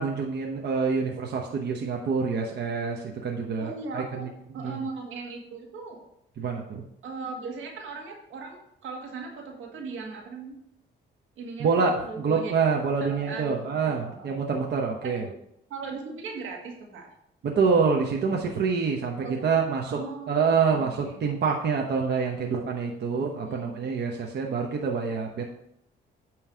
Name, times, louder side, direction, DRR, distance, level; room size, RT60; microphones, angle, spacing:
voice 1, 0.0-4.3 4.6-4.8 6.4-6.8 11.6-11.9 12.2-15.3 17.4-20.0 20.3-25.4, right 5 dB, 60° right, 1 dB, 1.0 m, -26 dB
voice 2, 3.6-6.1 7.0-10.5 11.4-12.5 13.0-14.3 15.0-15.2 15.7-17.1 19.2-19.5 19.9-21.3 23.4-23.8, right 4 dB, 85° right, 0 dB, 1.8 m, -38 dB
9.1 x 3.2 x 6.2 m, 0.76 s
cardioid pair, 90°, 20 cm